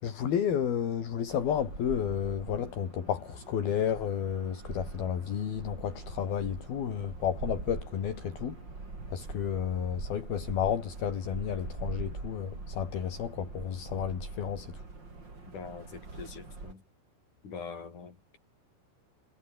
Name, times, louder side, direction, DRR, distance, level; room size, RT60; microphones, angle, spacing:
voice 1, 0.0-8.6 9.1-14.8, left 8 dB, 65° left, 4.7 m, -32 dB
sound 1, 1.3-16.7, right 3 dB, 25° right, 5.2 m, -43 dB
voice 2, 15.5-16.8 17.4-18.4, left 5 dB, 50° left, 6.7 m, -43 dB
omnidirectional pair, 4.8 m